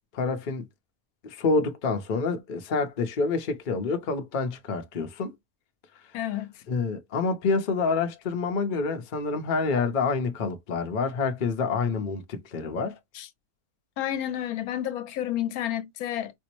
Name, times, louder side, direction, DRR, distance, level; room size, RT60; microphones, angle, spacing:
voice 1, 0.1-0.7 1.2-5.4 6.7-13.0, left 4 dB, 45° left, 0.7 m, -27 dB
voice 2, 6.1-6.6 13.1-13.3 14.0-16.3, left 11 dB, 80° left, 1.0 m, -30 dB
4.4 x 2.0 x 2.9 m
omnidirectional pair, 1.5 m